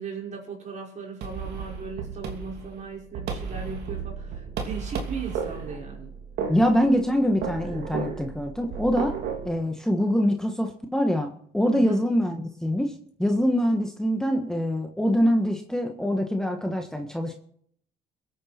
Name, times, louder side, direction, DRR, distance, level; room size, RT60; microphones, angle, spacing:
voice 1, 0.0-6.1 11.7-12.0, right 5 dB, 45° right, 0 dB, 5.2 m, -37 dB
sound 1, 1.2-9.5, right 6 dB, 75° right, 3.0 m, -34 dB
voice 2, 6.5-9.1 9.4-12.9 13.2-17.3, equal, 5° left, 3 dB, 1.4 m, -24 dB
23.0 x 9.2 x 4.4 m, 0.64 s
cardioid pair, 110°, 17 cm